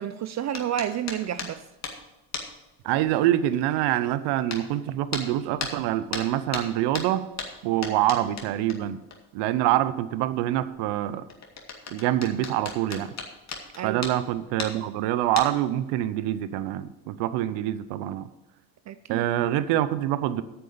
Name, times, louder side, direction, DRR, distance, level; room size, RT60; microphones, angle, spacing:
voice 1, 0.0-1.6 7.8-7.9 13.7-14.0 18.9-19.3, right 10 dB, 45° right, 0.5 m, -30 dB
sound 1, 0.5-2.0 2.3-2.7 3.0-3.2 4.5-4.6 5.1-5.3 5.6-9.2 9.5-9.6 10.5-14.8 15.2-15.7 16.4-16.6 17.0-17.2, left 4 dB, 40° left, 2.2 m, -36 dB
voice 2, 2.8-7.2 7.6-9.0 9.3-11.3 11.9-13.1 13.8-18.3 19.1-20.4, right 13 dB, 80° right, 0.8 m, -25 dB
9.1 x 6.9 x 6.8 m
supercardioid pair, 80°, 40 cm